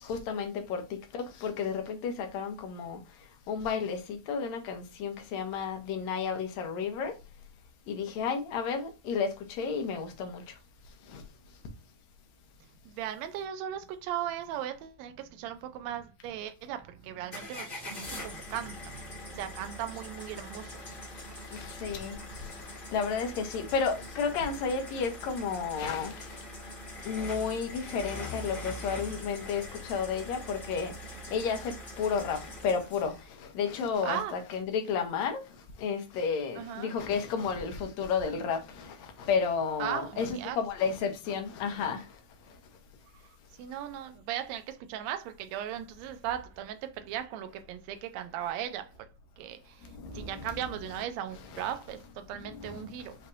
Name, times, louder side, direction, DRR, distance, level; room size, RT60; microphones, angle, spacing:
voice 1, 0.0-0.8 1.1-3.0 3.5-7.1 7.9-10.4 11.1-11.2 21.5-22.2 22.9-26.4 27.1-30.9 31.3-33.1 33.4-35.4 35.8-42.1 49.9-50.5 51.5-51.7 52.4-52.9, left 6 dB, 70° left, 1.9 m, -32 dB
voice 2, 12.8-20.9 34.0-34.3 36.6-36.9 39.8-40.6 43.6-48.9 49.4-53.2, right 10 dB, 80° right, 1.6 m, -37 dB
sound 1, 17.3-33.2, left 1 dB, 30° left, 1.0 m, -43 dB
5.5 x 3.2 x 2.5 m
omnidirectional pair, 3.6 m